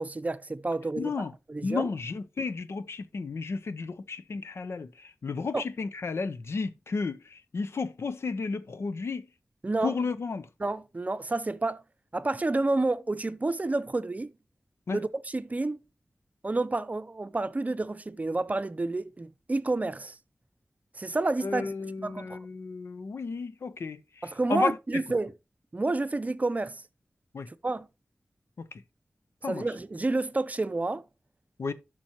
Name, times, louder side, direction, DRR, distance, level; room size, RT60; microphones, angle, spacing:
voice 1, 0.0-1.1 1.5-1.9 5.5-5.6 9.6-9.9 10.6-11.8 12.1-14.3 14.9-15.8 16.4-20.2 21.0-22.4 24.2-25.3 25.7-26.8 27.5-27.9 29.5-31.0, right 2 dB, 35° right, 0.6 m, -29 dB
voice 2, 1.0-1.3 1.6-9.3 9.8-10.5 14.9-15.0 21.4-25.0 27.3-27.5 28.6-28.8 29.4-29.6 31.6-31.7, left 4 dB, 85° left, 0.7 m, -33 dB
12.0 x 6.0 x 2.9 m
wide cardioid pair, 70°, 4 cm